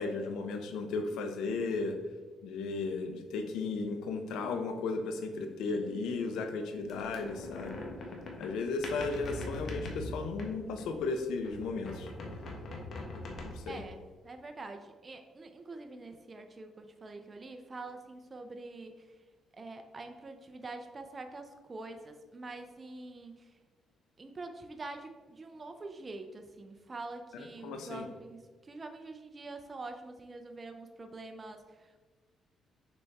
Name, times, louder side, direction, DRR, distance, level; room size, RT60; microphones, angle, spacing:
voice 1, 0.0-1.9 2.4-7.9 8.4-12.1 13.4-13.8 27.3-28.1, left 4 dB, 85° left, 6 dB, 0.7 m, -35 dB
sound 1, 6.9-11.1 11.4-13.9, left 1 dB, 55° left, 1.2 m, -41 dB
voice 2, 13.7-19.2 19.5-23.6 24.2-32.0, right 3 dB, 30° right, 6 dB, 0.5 m, -45 dB
6.8 x 4.0 x 3.5 m, 1.4 s
cardioid pair, 90°, 0 cm